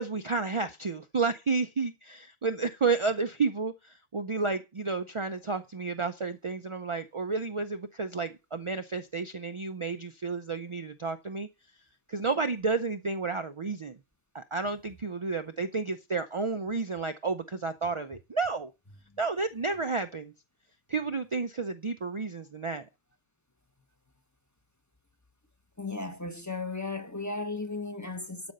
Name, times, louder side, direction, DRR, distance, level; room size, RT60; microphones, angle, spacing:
voice 1, 0.0-11.5 12.1-14.0 14.3-18.7 19.2-20.3 20.9-22.9, right 4 dB, 35° right, 0.6 m, -31 dB
voice 2, 25.8-28.5, left 3 dB, 15° left, 1.2 m, -35 dB
12.5 x 5.3 x 6.6 m
omnidirectional pair, 1.0 m